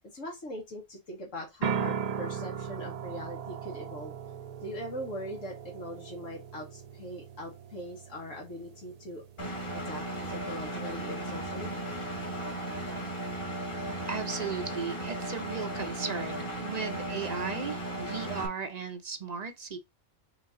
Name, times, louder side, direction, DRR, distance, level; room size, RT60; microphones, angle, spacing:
voice 1, 0.1-4.1 4.6-9.2 9.7-11.7, equal, 75° left, 1.8 m, -41 dB
sound 1, 1.6-13.4, right 7 dB, 90° right, 0.3 m, -40 dB
Engine, 9.4-18.5, right 1 dB, 25° left, 1.3 m, -36 dB
voice 2, 14.1-19.8, right 5 dB, 40° right, 0.6 m, -36 dB
5.1 x 2.7 x 3.7 m
omnidirectional pair, 1.3 m